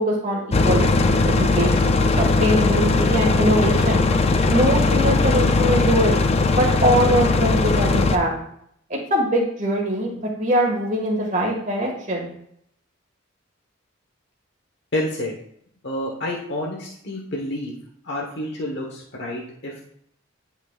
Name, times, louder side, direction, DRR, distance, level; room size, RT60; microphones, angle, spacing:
voice 1, 0.0-4.0 4.5-6.2 6.6-8.4 8.9-12.3, equal, 35° right, -1 dB, 1.8 m, -22 dB
sound 1, 0.5-8.2, left 3 dB, 30° left, 0.4 m, -19 dB
voice 2, 14.9-15.3 15.8-17.7 18.0-19.9, left 1 dB, 55° left, -2 dB, 1.2 m, -29 dB
10.5 x 5.9 x 2.4 m, 0.70 s
head